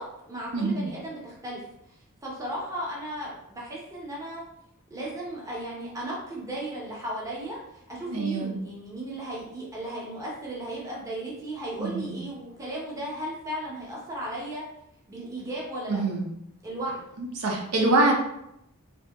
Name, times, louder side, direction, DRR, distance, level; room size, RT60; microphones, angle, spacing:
voice 1, 0.0-1.7 2.2-4.4 4.9-14.6 15.1-16.0 16.6-17.1, right 1 dB, 15° right, -5 dB, 0.6 m, -35 dB
voice 2, 0.5-0.9 8.1-8.6 11.8-12.2 15.9-16.3 17.2-18.1, right 2 dB, 80° right, -1 dB, 0.6 m, -25 dB
2.7 x 2.7 x 2.3 m, 0.80 s
head